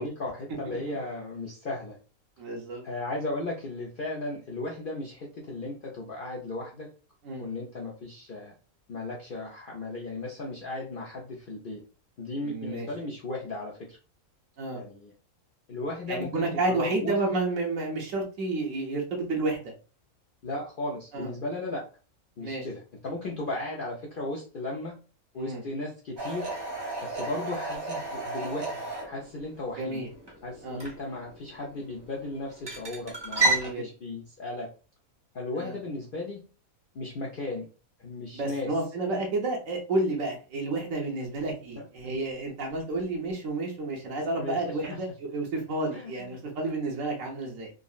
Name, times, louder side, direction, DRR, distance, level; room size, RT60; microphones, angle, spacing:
voice 1, 0.0-2.0 2.8-6.9 7.4-8.5 8.9-11.8 12.2-14.0 14.7-15.1 15.7-17.3 20.4-21.8 22.4-25.0 25.3-26.5 27.0-30.0 30.4-34.7 35.3-36.4 36.9-37.7 38.0-38.7 39.1-39.2 41.8-41.9 44.4-44.6 45.9-46.4, left 2 dB, 60° left, -3 dB, 0.5 m, -36 dB
voice 2, 2.4-2.8 7.2-7.5 12.4-12.9 14.6-14.8 16.1-19.7 21.1-21.3 22.4-22.6 25.4-25.6 29.8-30.1 30.6-30.8 33.4-33.9 35.5-35.8 38.3-47.7, right 2 dB, 65° right, 0 dB, 1.2 m, -31 dB
sound 1, 26.2-33.7, right 2 dB, 30° right, 0.5 m, -33 dB
3.6 x 2.0 x 2.4 m, 0.35 s
omnidirectional pair, 1.5 m